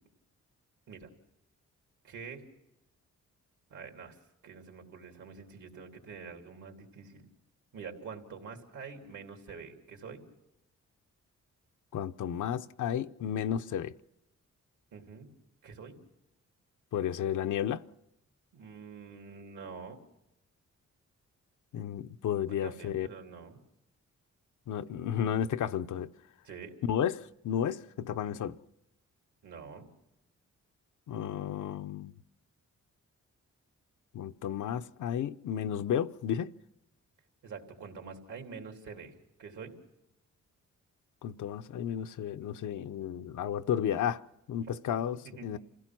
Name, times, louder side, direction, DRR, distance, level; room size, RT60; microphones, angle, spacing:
voice 1, 2.0-2.4 3.7-4.2 4.4-7.3 7.7-10.2 14.9-15.3 15.6-16.0 18.5-20.0 22.5-23.6 26.4-26.7 29.4-29.9 37.4-39.1 39.4-39.7 44.6-44.7 45.2-45.5, right 5 dB, 80° right, 3.3 m, -46 dB
voice 2, 11.9-13.9 16.9-17.8 21.7-23.1 24.7-26.1 26.8-28.6 31.1-32.1 34.1-36.5 41.2-44.2 44.5-45.6, left 9 dB, 85° left, 0.7 m, -32 dB
27.0 x 16.5 x 6.1 m
cardioid pair, 105°, 30 cm